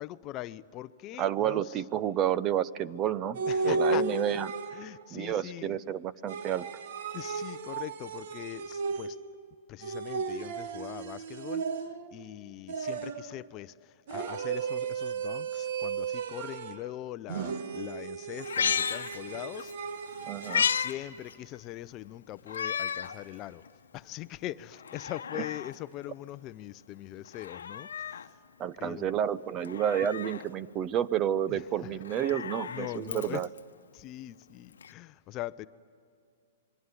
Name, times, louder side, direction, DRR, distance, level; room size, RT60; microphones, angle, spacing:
voice 1, 0.0-1.8 3.5-4.2 4.7-6.0 7.1-9.2 9.7-19.7 20.7-23.6 23.9-28.4 28.8-29.1 31.5-31.9 32.7-33.4 33.9-35.7, left 15 dB, 30° left, 0.6 m, -42 dB
voice 2, 1.2-4.5 5.1-6.7 20.3-20.7 28.6-33.5, right 10 dB, 30° right, 0.6 m, -30 dB
sound 1, 3.4-5.1 6.3-9.4 9.8-12.2 12.7-13.4 14.1-16.9 17.3-20.8, right 4 dB, 60° right, 1.4 m, -34 dB
Meow, 18.4-19.7 20.1-20.9 21.3-21.4 22.5-23.1 23.7-23.8 24.7-25.7 27.3-28.3 29.6-30.4 31.9-33.6 34.8-34.9, left 7 dB, 90° left, 1.0 m, -33 dB
27.0 x 23.0 x 9.8 m
hypercardioid pair, 140°, 0 cm